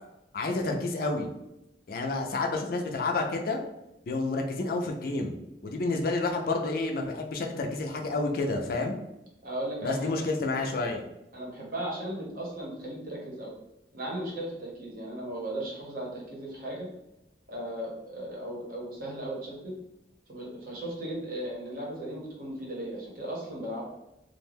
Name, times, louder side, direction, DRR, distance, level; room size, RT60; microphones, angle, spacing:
voice 1, 0.3-1.3 1.9-3.6 4.1-5.4 5.6-8.9 9.8-11.1, left 3 dB, 55° left, 3 dB, 0.4 m, -29 dB
voice 2, 9.4-10.1 11.3-13.5 13.9-16.9 17.5-19.7 20.3-24.0, right 1 dB, 55° right, -3 dB, 0.9 m, -36 dB
2.4 x 2.1 x 3.3 m, 0.89 s
head